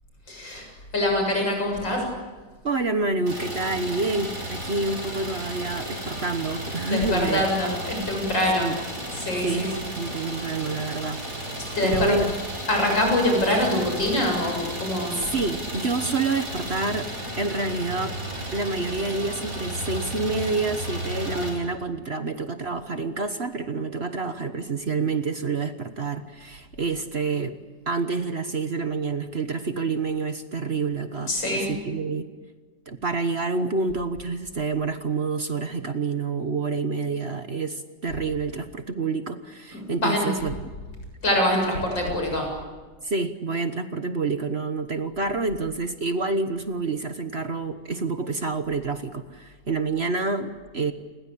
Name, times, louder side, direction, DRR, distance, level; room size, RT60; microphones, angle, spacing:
voice 1, 0.3-2.1 6.8-8.8 9.1-9.8 11.7-12.2 12.7-15.2 31.3-31.7 39.7-40.4 41.2-42.5, left 1 dB, 90° left, 2 dB, 8.0 m, -24 dB
voice 2, 2.6-7.5 8.6-8.7 9.4-9.7 10.0-11.2 11.8-12.3 15.2-17.1 17.4-18.1 18.5-27.6 27.9-32.3 32.9-40.7 43.0-50.9, right 3 dB, 40° right, 9 dB, 1.2 m, -28 dB
Idling, 3.3-21.5, right 1 dB, 60° right, 6.4 m, -34 dB
29.0 x 21.5 x 8.6 m, 1.4 s
omnidirectional pair, 2.0 m